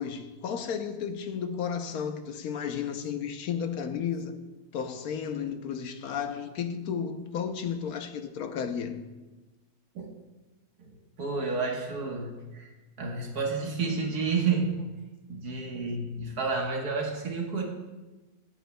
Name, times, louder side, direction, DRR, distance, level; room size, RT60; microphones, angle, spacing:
voice 1, 0.0-4.4 4.7-9.0, left 7 dB, 75° left, 1.2 m, -33 dB
voice 2, 11.2-12.7 13.0-14.9 15.3-17.6, right 4 dB, 80° right, 1.8 m, -30 dB
21.0 x 8.2 x 2.2 m
omnidirectional pair, 1.6 m